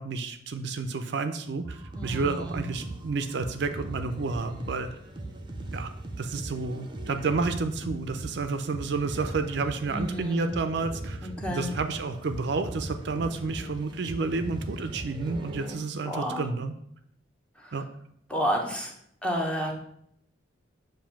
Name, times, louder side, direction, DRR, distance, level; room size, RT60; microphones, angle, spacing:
voice 1, 0.0-5.0 5.7-5.9 6.2-16.7 17.7-17.9, right 4 dB, 60° right, 8 dB, 0.5 m, -30 dB
sound 1, 1.6-15.8, right 1 dB, 25° right, 0.7 m, -39 dB
voice 2, 1.9-2.6 9.9-10.5 11.2-11.7 13.2-13.5 16.0-16.5 17.6-17.8 18.3-18.9 19.2-19.7, equal, 5° left, 0 dB, 0.9 m, -31 dB
7.2 x 2.6 x 5.7 m, 0.71 s
head